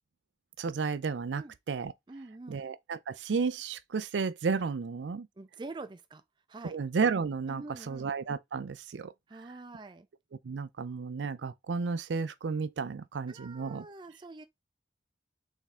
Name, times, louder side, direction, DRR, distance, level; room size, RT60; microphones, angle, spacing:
voice 1, 0.6-1.9 2.5-5.3 6.6-9.1 10.4-13.9, right 5 dB, 85° right, 0.4 m, -33 dB
voice 2, 2.1-2.6 5.4-6.2 6.5-6.8 7.5-8.1 9.3-10.1 13.3-14.4, right 3 dB, 25° right, 0.4 m, -45 dB
3.6 x 3.5 x 4.2 m
head